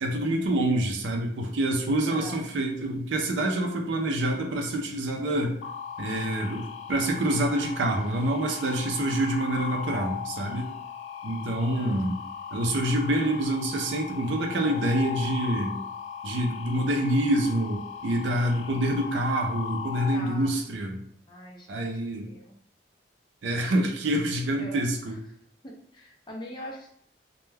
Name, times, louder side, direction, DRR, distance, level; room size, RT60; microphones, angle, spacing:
voice 1, 0.0-5.6 6.0-10.7 11.2-12.2 12.5-15.8 16.2-21.0 21.7-22.3 23.4-25.2, right 1 dB, 80° right, 2 dB, 0.5 m, -26 dB
voice 2, 2.1-2.4 11.7-12.1 20.1-20.5 21.3-22.5 24.5-24.9 25.6-26.9, left 1 dB, 25° left, -2 dB, 0.5 m, -42 dB
sound 1, 5.6-20.2, left 8 dB, 85° left, 0.4 m, -38 dB
2.2 x 2.2 x 3.2 m, 0.63 s
head